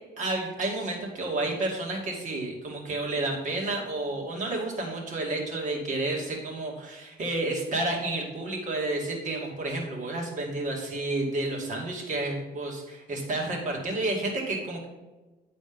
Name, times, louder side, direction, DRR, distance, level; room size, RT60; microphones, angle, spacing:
voice 1, 0.2-14.8, right 2 dB, 45° right, -1 dB, 2.4 m, -30 dB
9.4 x 4.2 x 5.3 m, 1.2 s
cardioid pair, 110°, 17 cm